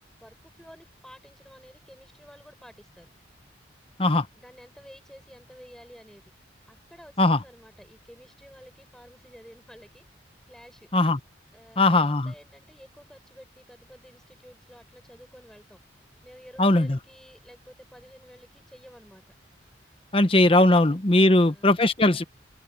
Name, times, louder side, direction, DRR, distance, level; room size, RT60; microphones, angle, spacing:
voice 1, 0.2-3.1 4.3-6.3 6.7-10.0 10.5-10.9 11.5-15.8 16.2-19.4 20.7-20.8 21.2-21.8, equal, 5° left, 5.9 m, -51 dB
voice 2, 11.8-12.3 16.6-17.0 20.1-22.2, left 2 dB, 30° left, 1.0 m, -19 dB
head